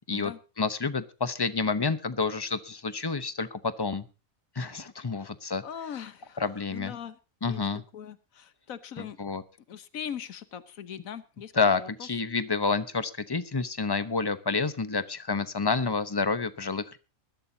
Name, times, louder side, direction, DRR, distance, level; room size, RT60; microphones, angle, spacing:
voice 1, 0.6-4.1 4.6-5.6 6.4-6.9 7.4-7.8 9.0-9.4 11.5-17.0, left 4 dB, 20° left, 12 dB, 0.7 m, -29 dB
voice 2, 5.6-7.2 7.4-7.6 7.9-9.2 9.7-11.5 11.8-12.1, left 8 dB, 70° left, 14 dB, 1.3 m, -40 dB
21.0 x 12.5 x 2.8 m, 0.32 s
omnidirectional pair, 1.5 m